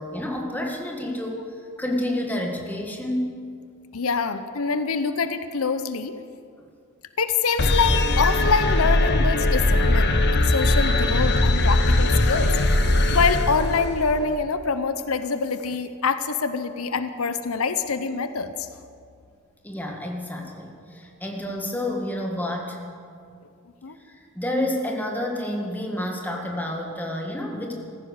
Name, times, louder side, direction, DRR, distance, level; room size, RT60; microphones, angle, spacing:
voice 1, 0.0-1.4 1.8-3.4 19.6-22.8 24.0-27.7, left 1 dB, 10° left, 1 dB, 1.8 m, -29 dB
voice 2, 3.9-6.1 7.2-12.5 13.1-18.7 23.8-24.0, left 5 dB, 80° left, 11 dB, 0.8 m, -25 dB
sound 1, 7.6-14.2, left 1 dB, 50° left, 1.1 m, -20 dB
15.0 x 14.5 x 6.6 m, 2.3 s
head